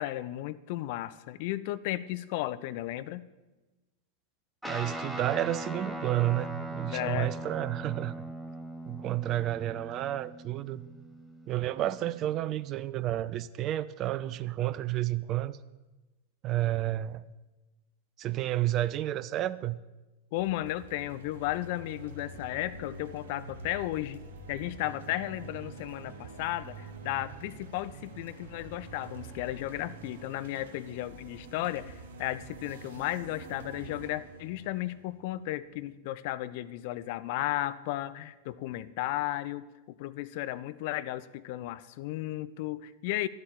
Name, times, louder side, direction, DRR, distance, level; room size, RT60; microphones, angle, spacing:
voice 1, 0.0-3.3 6.9-7.3 20.3-24.2 24.5-43.3, left 15 dB, 50° left, 14 dB, 0.6 m, -34 dB
Guitar, 4.6-12.3, right 1 dB, ahead, 1.4 m, -40 dB
voice 2, 4.6-8.2 8.9-10.8 11.5-15.6 16.4-17.2 18.2-19.8, right 14 dB, 35° right, 17 dB, 0.5 m, -31 dB
sound 1, 20.3-35.8, right 3 dB, 55° right, 2.9 m, -47 dB
12.0 x 8.3 x 9.1 m, 1.1 s
figure-of-eight pair, 90°, 0 cm